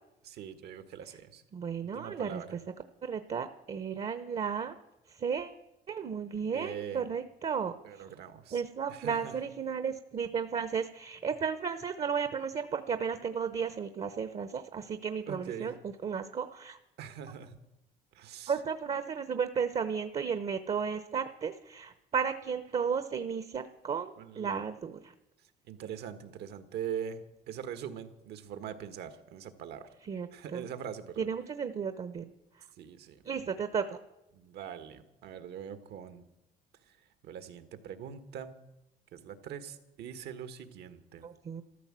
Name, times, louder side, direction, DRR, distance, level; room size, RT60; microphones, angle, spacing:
voice 1, 0.2-1.4 1.9-2.6 6.4-7.1 7.8-8.6 8.9-9.3 15.3-15.7 17.0-17.6 18.1-18.5 24.2-24.7 25.4-29.9 30.3-31.3 32.8-33.2 34.3-36.2 36.9-38.6 39.1-41.3, right 8 dB, 75° right, 10 dB, 1.6 m, -42 dB
voice 2, 1.5-2.4 3.0-4.7 5.1-5.6 5.9-8.0 8.5-16.8 18.5-25.1 30.1-30.6 31.2-32.2 33.3-33.8 41.2-41.6, right 6 dB, 40° right, 10 dB, 0.9 m, -34 dB
13.5 x 13.0 x 7.5 m, 0.92 s
cardioid pair, 110°, 17 cm